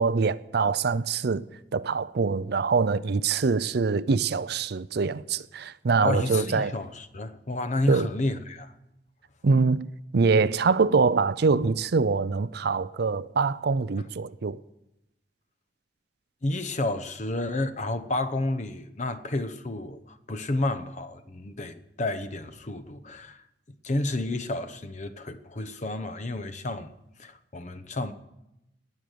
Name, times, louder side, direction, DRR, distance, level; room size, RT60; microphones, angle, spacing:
voice 1, 0.0-1.4 1.7-6.7 7.9-8.1 9.4-14.6, right 4 dB, 60° right, 0.5 m, -24 dB
voice 2, 6.0-8.7 11.6-11.7 16.4-26.9 27.2-28.1, left 2 dB, 40° left, 0.9 m, -31 dB
19.0 x 6.6 x 9.4 m
head